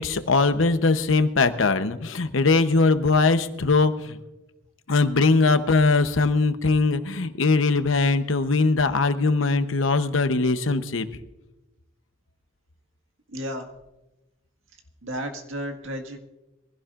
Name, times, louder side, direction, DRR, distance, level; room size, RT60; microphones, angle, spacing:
voice 1, 0.0-4.2 4.9-11.1, left 3 dB, 75° left, 10 dB, 0.9 m, -21 dB
voice 2, 13.3-13.7 15.0-16.2, equal, 75° right, 3 dB, 1.8 m, -33 dB
23.5 x 16.0 x 2.5 m, 1.0 s
head